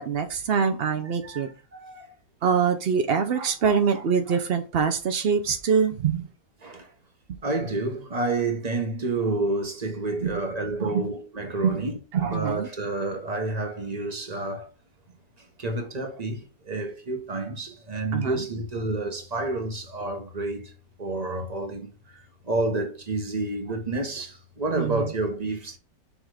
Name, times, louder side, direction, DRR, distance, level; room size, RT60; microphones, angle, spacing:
voice 1, 0.0-1.5 2.4-6.3 10.2-10.3 10.8-11.1 11.6-11.8 12.1-12.7 18.1-18.4 24.8-25.0, right 6 dB, 80° right, 0.5 m, -24 dB
voice 2, 1.0-2.1 6.6-6.9 7.4-14.7 15.6-20.7 21.0-25.8, right 2 dB, 25° right, 1.1 m, -29 dB
6.3 x 3.5 x 4.9 m
omnidirectional pair, 1.9 m